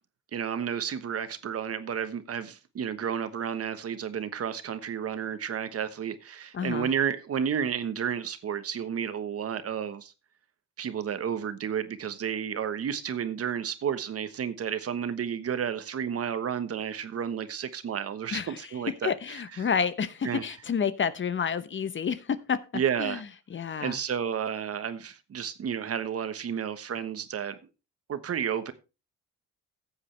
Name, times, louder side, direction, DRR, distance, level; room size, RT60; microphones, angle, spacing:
voice 1, 0.3-10.1 10.8-19.7 20.2-20.5 22.7-23.2 23.8-27.6 28.1-28.7, right 8 dB, 50° right, 1.2 m, -31 dB
voice 2, 6.5-6.9 18.3-18.6 19.0-22.6 23.0-23.2 23.5-24.0, left 6 dB, 40° left, 0.9 m, -29 dB
14.5 x 8.1 x 3.3 m
cardioid pair, 90°, 30 cm